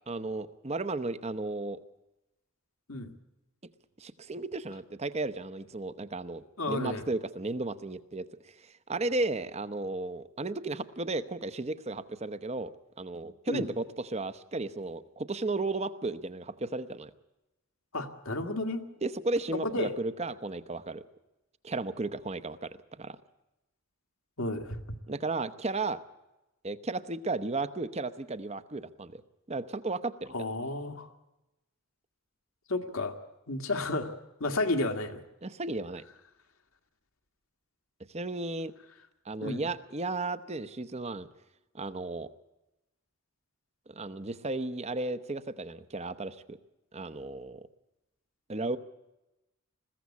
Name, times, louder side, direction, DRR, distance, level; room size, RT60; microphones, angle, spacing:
voice 1, 0.1-1.8 4.0-8.3 8.6-12.7 13.0-17.1 19.0-21.0 21.6-23.2 25.1-26.0 26.6-29.2 29.5-30.3 35.4-36.0 38.1-38.7 39.3-41.3 41.7-42.3 43.9-46.6 46.9-47.7 48.5-48.8, right 2 dB, 30° right, 14 dB, 0.8 m, -34 dB
voice 2, 6.6-7.0 13.5-13.6 17.9-18.8 19.7-19.9 24.4-24.8 30.3-31.1 32.7-33.1 33.5-34.1 34.4-35.2 39.4-39.6, left 2 dB, 80° left, 4 dB, 1.8 m, -31 dB
21.0 x 15.5 x 8.4 m, 0.97 s
head